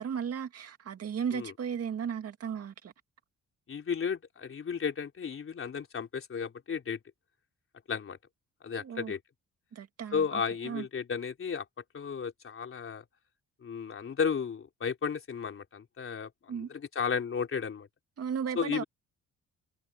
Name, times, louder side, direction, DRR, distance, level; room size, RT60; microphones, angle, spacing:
voice 1, 0.0-2.9 8.8-9.1 9.7-10.9 16.5-16.7 18.2-18.8, right 7 dB, 55° right, 2.3 m, -35 dB
voice 2, 3.7-7.0 7.9-8.2 8.6-9.2 10.1-11.6 11.9-13.0 13.6-17.9 18.6-18.8, left 6 dB, 45° left, 3.6 m, -33 dB
cardioid pair, 90°, 30 cm